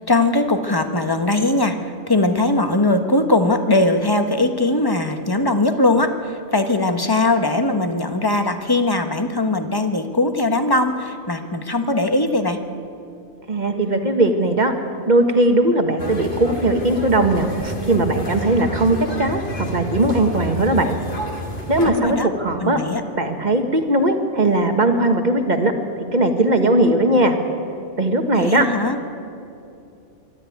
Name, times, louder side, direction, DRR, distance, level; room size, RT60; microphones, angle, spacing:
voice 1, 0.0-12.6 21.8-22.3 22.6-23.0 28.3-29.0, left 2 dB, 20° left, 7 dB, 1.2 m, -20 dB
voice 2, 13.5-14.7 15.1-21.0 21.7-22.8 23.2-25.7 26.1-27.4 28.0-28.6, right 2 dB, 35° right, 6 dB, 1.7 m, -18 dB
sound 1, 16.0-21.9, left 1 dB, 45° left, 2.3 m, -29 dB
24.5 x 13.0 x 9.3 m, 2.6 s
omnidirectional pair, 1.3 m